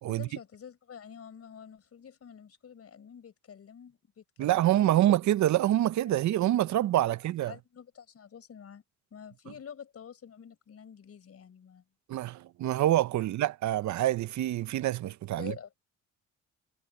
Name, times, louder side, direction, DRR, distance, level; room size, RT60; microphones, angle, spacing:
voice 1, 0.1-5.1 7.1-8.8 9.1-11.8 13.2-13.3 15.3-15.8, left 7 dB, 50° left, 5.3 m, -48 dB
voice 2, 4.4-7.5 12.1-15.5, right 13 dB, 70° right, 0.7 m, -26 dB
cardioid pair, 90°, 30 cm